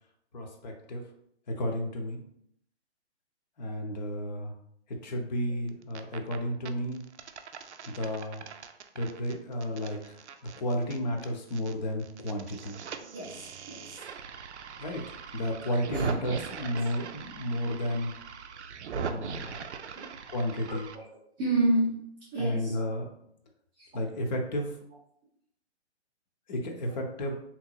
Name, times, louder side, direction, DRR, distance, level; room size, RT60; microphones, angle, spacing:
voice 1, 0.3-1.0 1.5-2.2 3.6-4.5 4.9-7.0 7.9-8.4 8.9-10.2 10.4-12.8 14.8-15.0 15.3-18.1 18.9-19.6 20.3-20.9 22.4-23.1 23.9-24.7 26.5-27.3, equal, 40° left, 2 dB, 0.6 m, -32 dB
sound 1, 5.7-6.4 6.7-11.7 12.0-21.0, right 6 dB, 75° right, 0.5 m, -41 dB
voice 2, 13.1-14.1 15.9-16.4 16.8-16.9 20.0-20.1 20.7-22.0 22.3-22.9 23.8-24.0 26.9-27.0, right 1 dB, 10° right, -10 dB, 0.4 m, -31 dB
3.7 x 2.9 x 2.2 m, 0.71 s
figure-of-eight pair, 130°, 35 cm